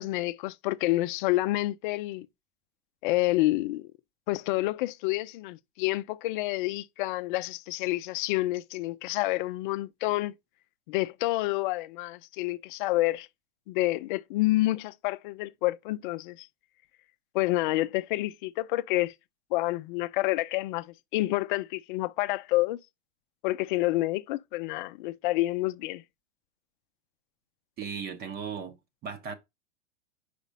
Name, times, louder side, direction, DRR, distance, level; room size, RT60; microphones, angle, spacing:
voice 1, 0.0-2.3 3.0-3.9 4.3-10.3 10.9-13.3 13.7-16.5 17.3-19.1 19.5-22.8 23.4-26.0, left 18 dB, 45° left, 0.5 m, -28 dB
voice 2, 27.8-29.3, right 6 dB, 25° right, 1.0 m, -37 dB
5.1 x 4.0 x 5.3 m
hypercardioid pair, 120°, 35 cm